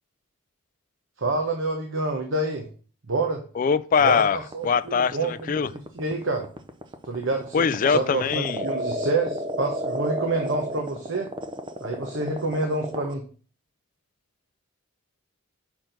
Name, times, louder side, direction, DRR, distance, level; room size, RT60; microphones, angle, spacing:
voice 1, 1.2-2.7 3.1-3.4 4.0-6.5 7.0-11.3 11.8-13.2, right 2 dB, 60° right, 0.9 m, -28 dB
voice 2, 3.6-4.4 4.6-5.7 7.5-8.6, left 6 dB, 40° left, 0.3 m, -22 dB
sound 1, 4.2-13.1, right 1 dB, 25° right, 0.6 m, -32 dB
5.8 x 4.5 x 5.2 m
head